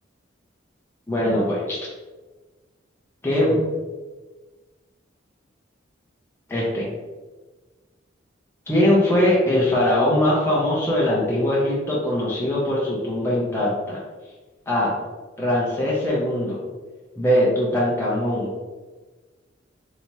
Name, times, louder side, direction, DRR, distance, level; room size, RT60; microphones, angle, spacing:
voice 1, 1.1-1.8 3.2-3.6 6.5-6.9 8.7-14.0 14.7-14.9 15.4-16.6 17.2-18.5, left 1 dB, 10° left, -6 dB, 0.6 m, -21 dB
3.3 x 2.8 x 2.9 m, 1.3 s
head